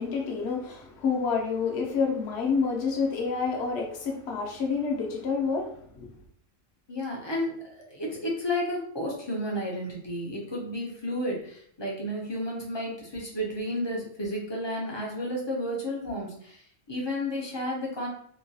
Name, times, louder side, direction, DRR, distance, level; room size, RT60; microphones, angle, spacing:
voice 1, 0.0-6.1, left 5 dB, 65° left, 1 dB, 0.9 m, -28 dB
voice 2, 6.9-18.1, left 1 dB, 35° left, -2 dB, 0.4 m, -32 dB
2.9 x 2.2 x 2.6 m, 0.64 s
omnidirectional pair, 1.3 m